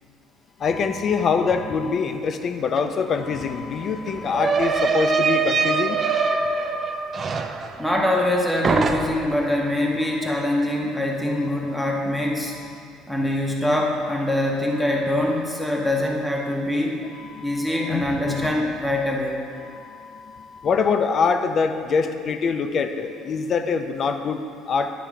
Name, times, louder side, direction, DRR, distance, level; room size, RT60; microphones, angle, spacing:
voice 1, 0.6-6.0 9.2-9.3 10.2-10.3 17.2-18.5 19.6-24.9, left 5 dB, 35° left, 8 dB, 0.4 m, -24 dB
sound 1, 2.8-2.9 3.1-8.4 8.6-9.4, right 5 dB, 25° right, 0.4 m, -24 dB
voice 2, 7.8-12.6 13.1-17.0 17.4-19.4, left 1 dB, ahead, -2 dB, 0.8 m, -24 dB
10.0 x 3.4 x 6.1 m, 2.4 s
cardioid pair, 155°, 0 cm